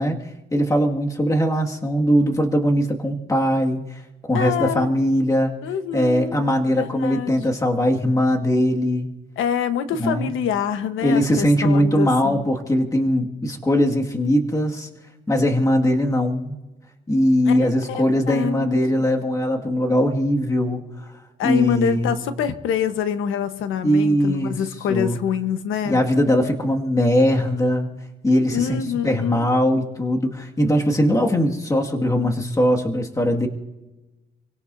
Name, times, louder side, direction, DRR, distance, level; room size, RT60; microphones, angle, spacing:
voice 1, 0.0-3.8 4.3-5.5 5.9-9.1 10.0-10.3 11.0-14.9 15.3-16.6 17.1-20.8 21.4-22.2 23.8-24.6 24.9-25.2 25.8-28.0 28.2-33.5, equal, 15° left, 1 dB, 2.0 m, -20 dB
voice 2, 4.3-4.9 5.6-6.4 6.8-7.4 9.4-12.4 17.4-19.1 21.4-26.0 28.5-29.5, left 8 dB, 85° left, 9 dB, 1.2 m, -26 dB
28.5 x 17.5 x 2.7 m, 1.1 s
cardioid pair, 90°, 20 cm